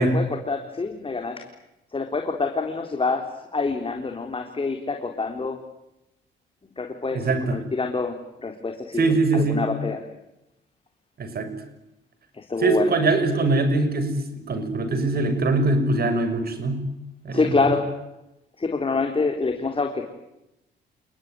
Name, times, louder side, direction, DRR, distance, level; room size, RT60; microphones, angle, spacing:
voice 1, 0.0-1.4 1.9-3.3 3.5-5.6 6.6-10.0 12.3-13.0 17.3-17.9 18.6-20.0, left 4 dB, 25° left, 4 dB, 4.0 m, -26 dB
voice 2, 7.1-7.6 9.0-9.6 11.2-11.5 12.6-16.8 17.2-17.5, right 3 dB, 50° right, 9 dB, 6.9 m, -22 dB
29.5 x 21.0 x 9.7 m, 0.89 s
cardioid pair, 90°, 20 cm